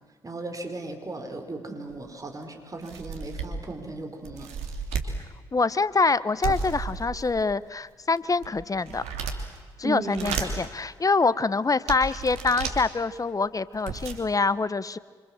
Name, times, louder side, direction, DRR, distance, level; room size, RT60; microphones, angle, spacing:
voice 1, 0.2-4.5 9.8-10.4, right 3 dB, 30° right, 5 dB, 5.3 m, -36 dB
sound 1, 1.9-2.0 2.4-2.5 2.8-3.7 4.2-5.1 6.4-7.5 8.1-9.6 10.0-10.7 11.3-11.4 11.9-12.8 13.5-13.6 13.7-14.2, right 6 dB, 70° right, 3.0 m, -33 dB
voice 2, 5.5-9.0 9.8-15.0, left 4 dB, 30° left, 17 dB, 1.2 m, -25 dB
27.0 x 26.0 x 7.6 m, 1.5 s
hypercardioid pair, 40°, 11 cm